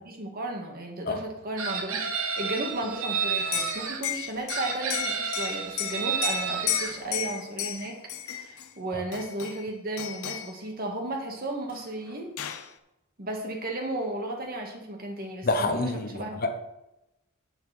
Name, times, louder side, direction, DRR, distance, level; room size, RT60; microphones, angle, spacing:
voice 1, 0.0-8.0 8.3-12.3 13.2-16.4, right 2 dB, 45° right, 1 dB, 2.0 m, -34 dB
Chicken rooster, 1.6-4.0 4.5-6.9, right 5 dB, 80° right, 1.3 m, -30 dB
Liquid, 3.4-8.7 9.1-9.7 10.0-10.5 11.7-11.8 12.1-12.7, left 11 dB, 90° left, 0.7 m, -33 dB
voice 2, 15.4-16.6, left 2 dB, 45° left, 7 dB, 0.9 m, -28 dB
9.4 x 9.2 x 4.4 m, 0.91 s
head